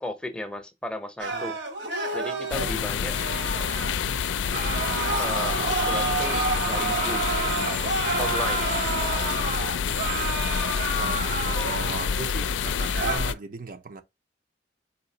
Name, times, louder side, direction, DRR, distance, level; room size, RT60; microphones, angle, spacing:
voice 1, 0.0-1.6 2.1-3.2 5.2-7.3 8.2-8.8, left 1 dB, 5° left, 0.6 m, -35 dB
sound 1, 1.2-3.9 4.5-12.3 12.7-13.2, right 3 dB, 70° right, 1.3 m, -29 dB
sound 2, 2.5-13.3, left 7 dB, 90° left, 0.4 m, -28 dB
sound 3, 4.1-10.7, right 6 dB, 85° right, 1.1 m, -46 dB
voice 2, 11.0-14.0, right 4 dB, 50° right, 0.5 m, -38 dB
4.0 x 3.8 x 2.7 m
head